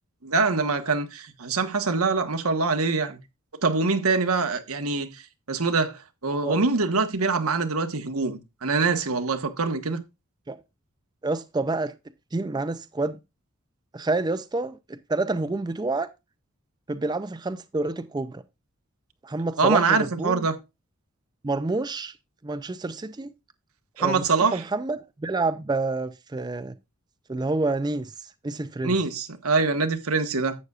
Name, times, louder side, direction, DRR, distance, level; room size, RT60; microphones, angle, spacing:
voice 1, 0.2-3.2 3.6-5.1 5.5-10.0 19.6-20.6 24.0-24.6 28.8-30.5, right 4 dB, 90° right, 1.3 m, -24 dB
voice 2, 11.2-11.9 12.3-13.2 13.9-16.1 16.9-18.4 19.2-20.5 21.4-22.1 22.4-23.3 24.0-26.8 27.3-29.0, right 3 dB, 20° right, 0.4 m, -28 dB
11.5 x 8.0 x 2.4 m
head